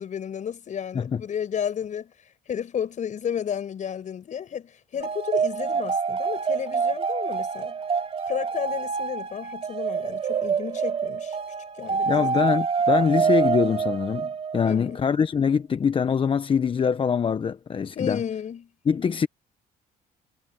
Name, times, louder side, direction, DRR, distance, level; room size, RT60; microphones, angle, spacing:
voice 1, 0.0-2.1 2.5-7.8 8.3-11.4 11.8-12.3 14.6-15.0 18.0-18.7, left 8 dB, 45° left, 5.9 m, -32 dB
sound 1, 5.0-14.8, right 6 dB, 35° right, 2.6 m, -26 dB
voice 2, 12.1-18.2 18.9-19.3, left 6 dB, 30° left, 0.8 m, -24 dB
cardioid pair, 110°, 17 cm